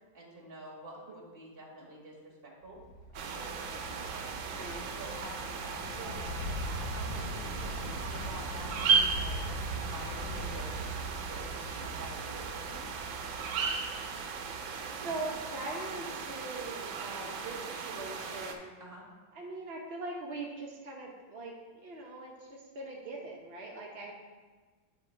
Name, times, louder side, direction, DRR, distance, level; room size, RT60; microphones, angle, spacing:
voice 1, 0.1-2.8 3.1-4.5 5.0-7.8 8.1-9.4 9.8-10.8 11.2-12.9 18.8-19.0, right 1 dB, 30° right, -3 dB, 1.6 m, -48 dB
sound 1, 2.6-15.8 16.1-16.2, right 1 dB, 70° left, 2.9 m, -41 dB
sound 2, 3.1-18.5, right 5 dB, 85° right, 1.5 m, -36 dB
voice 2, 4.5-4.9 6.0-6.2 15.0-18.7 19.3-24.1, right 2 dB, 65° right, -2 dB, 0.6 m, -41 dB
9.0 x 3.8 x 4.3 m, 1.4 s
omnidirectional pair, 2.1 m